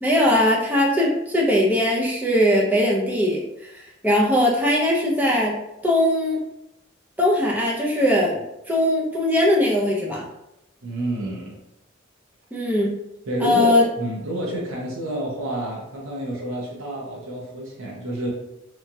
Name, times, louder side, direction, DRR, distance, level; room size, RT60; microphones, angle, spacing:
voice 1, 0.0-6.4 7.2-8.4 8.7-10.2 12.5-12.9 13.4-13.9, left 1 dB, 10° right, -4 dB, 0.5 m, -20 dB
voice 2, 10.8-11.6 13.3-18.3, right 1 dB, 85° right, -4 dB, 0.7 m, -29 dB
3.0 x 2.3 x 2.6 m, 0.86 s
head